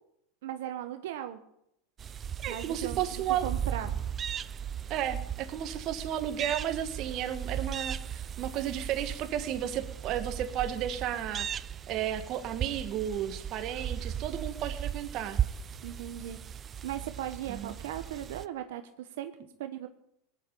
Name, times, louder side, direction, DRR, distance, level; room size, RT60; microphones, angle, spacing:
voice 1, 0.4-1.4 2.5-3.9 15.8-16.4 16.8-19.3 19.6-19.9, right 11 dB, 75° right, 8 dB, 1.1 m, -38 dB
sound 1, 2.0-18.4, right 8 dB, 25° right, 0.6 m, -37 dB
voice 2, 2.4-3.5 4.9-15.4 17.5-17.7, right 10 dB, 45° right, 8 dB, 1.8 m, -33 dB
18.5 x 8.8 x 8.7 m, 0.77 s
supercardioid pair, 130°, 0 cm